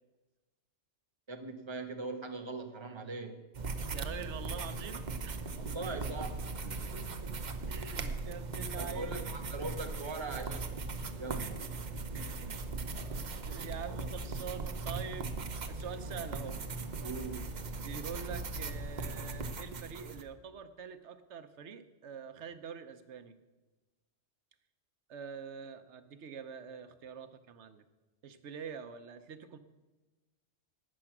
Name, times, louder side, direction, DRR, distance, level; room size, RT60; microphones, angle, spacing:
voice 1, 1.3-3.4 5.6-6.4 8.8-10.7 11.2-11.7 17.0-17.5, right 3 dB, 25° right, 5 dB, 1.1 m, -41 dB
sound 1, 3.5-20.2, right 3 dB, 45° right, 0.8 m, -39 dB
voice 2, 3.9-5.6 6.9-7.3 7.7-9.3 12.1-16.6 17.8-23.3 25.1-27.8 28.2-29.6, right 6 dB, 85° right, 10 dB, 1.1 m, -45 dB
12.5 x 8.8 x 6.0 m, 1.2 s
omnidirectional pair, 1.2 m